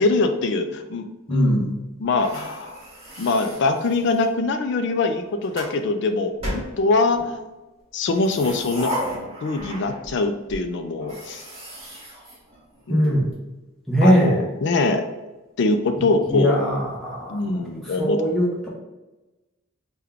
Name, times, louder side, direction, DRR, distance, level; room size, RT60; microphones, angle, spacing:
voice 1, 0.0-2.8 3.2-7.4 7.9-8.9 9.4-11.4 12.9-13.2 14.0-15.0 15.6-16.6 17.3-18.2, left 3 dB, 55° left, 7 dB, 0.3 m, -23 dB
voice 2, 1.3-1.6 12.9-13.3 13.9-14.4 16.3-18.7, equal, ahead, -5 dB, 0.7 m, -21 dB
sound 1, 2.1-4.4 5.1-5.8 6.4-7.3 8.0-10.2 10.5-10.6 11.0-13.1, equal, 25° right, 1.3 m, -35 dB
3.5 x 2.2 x 3.5 m, 1.1 s
head